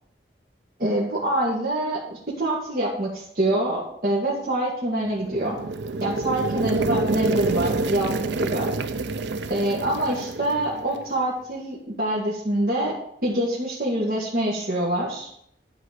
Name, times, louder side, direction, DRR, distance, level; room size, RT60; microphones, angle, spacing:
voice 1, 0.8-5.6 6.0-8.7 9.5-15.3, right 1 dB, 55° right, -6 dB, 1.9 m, -25 dB
sound 1, 5.1-11.2, right 3 dB, 80° right, 0.5 m, -27 dB
11.0 x 4.3 x 6.6 m, 0.69 s
head